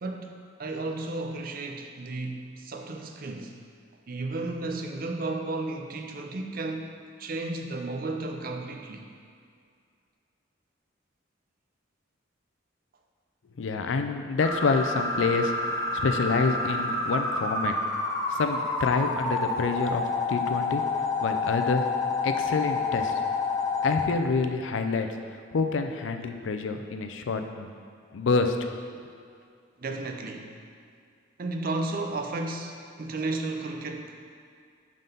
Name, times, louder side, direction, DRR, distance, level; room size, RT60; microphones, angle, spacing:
voice 1, 0.0-3.6 4.1-9.1 29.8-30.5 31.4-34.2, right 2 dB, 50° right, 4 dB, 0.5 m, -33 dB
voice 2, 13.6-15.5 16.0-17.7 18.3-20.8 21.2-21.9 22.2-23.1 23.8-25.1 25.5-27.7 28.1-28.6, left 4 dB, 80° left, 6 dB, 0.4 m, -27 dB
sound 1, 14.4-24.1, left 3 dB, 20° left, 0.6 m, -28 dB
5.4 x 3.8 x 5.4 m, 2.3 s
head